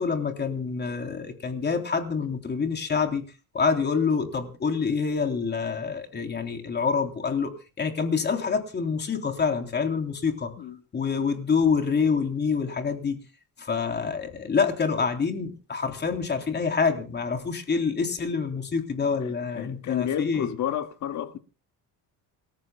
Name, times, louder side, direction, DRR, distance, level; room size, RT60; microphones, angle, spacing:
voice 1, 0.0-3.2 3.5-7.5 7.8-10.5 10.9-13.2 13.6-20.5, left 5 dB, 30° left, 3.4 m, -26 dB
voice 2, 19.2-21.4, left 10 dB, 50° left, 2.0 m, -31 dB
28.5 x 14.0 x 2.3 m
cardioid pair, 145°, 36 cm